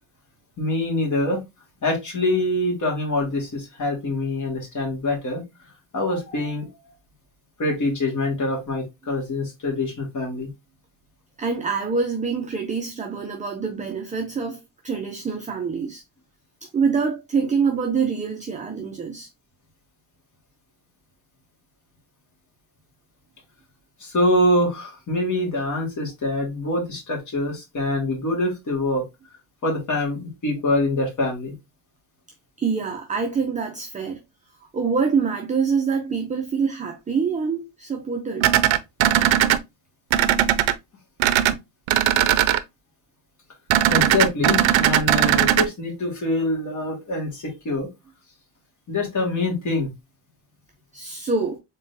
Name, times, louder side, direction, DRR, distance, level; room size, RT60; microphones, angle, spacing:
voice 1, 0.6-1.4 1.8-5.4 5.9-6.7 7.6-10.5 24.0-29.0 29.6-31.5 36.2-36.3 43.9-47.9 48.9-49.9, left 1 dB, 35° left, 1.9 m, -24 dB
voice 2, 11.4-16.0 16.7-19.3 32.6-34.2 34.7-38.5 50.9-51.6, right 5 dB, 15° right, 0.4 m, -25 dB
sound 1, 38.4-39.6 40.1-40.7 41.2-41.5 41.9-42.6 43.7-45.7, right 12 dB, 70° right, 0.6 m, -18 dB
3.9 x 3.7 x 2.6 m
cardioid pair, 145°, 48 cm